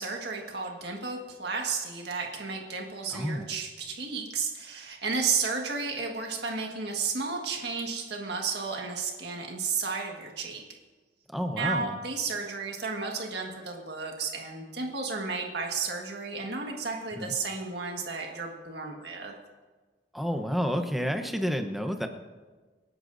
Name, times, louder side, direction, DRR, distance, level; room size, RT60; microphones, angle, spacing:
voice 1, 0.0-10.6 11.6-19.3, right 4 dB, 65° right, 1 dB, 1.7 m, -33 dB
voice 2, 3.1-3.5 11.3-12.0 17.2-17.3 20.1-22.1, equal, ahead, 5 dB, 0.9 m, -30 dB
27.0 x 11.0 x 2.7 m, 1.3 s
head